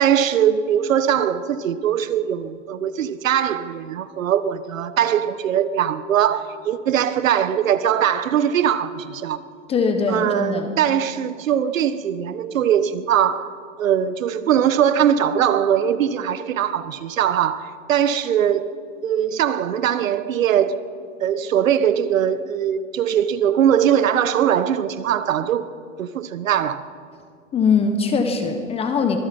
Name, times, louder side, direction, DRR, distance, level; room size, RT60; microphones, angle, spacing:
voice 1, 0.0-9.4 10.1-13.5 13.8-18.7 19.0-20.8 21.2-25.6 26.0-26.8, right 9 dB, 85° right, 1.3 m, -21 dB
voice 2, 9.7-10.7 27.5-29.2, left 5 dB, 15° left, 1.3 m, -21 dB
25.0 x 19.0 x 5.4 m
supercardioid pair, 155°, 39 cm